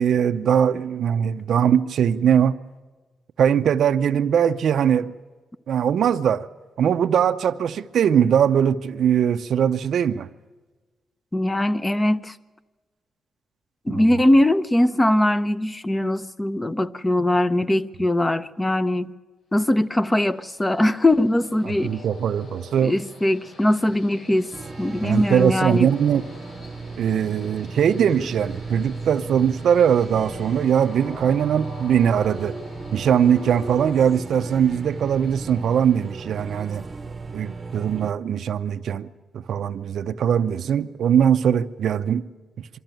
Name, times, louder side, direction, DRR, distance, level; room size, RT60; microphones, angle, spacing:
voice 1, 0.0-2.6 3.4-5.1 5.7-6.5 6.8-10.3 13.9-14.2 21.8-22.9 25.0-26.2 27.0-32.5 32.9-36.8 37.3-39.1 39.3-42.2, right 8 dB, 70° right, 0.6 m, -21 dB
voice 2, 11.3-12.3 13.9-19.1 19.5-22.0 22.8-24.5 24.8-25.9, left 1 dB, 15° left, 0.6 m, -21 dB
Train, 19.7-36.5, left 2 dB, 70° left, 3.5 m, -45 dB
sound 1, 24.5-38.1, right 4 dB, 25° right, 0.9 m, -36 dB
24.0 x 13.5 x 9.1 m
cardioid pair, 120°, 0 cm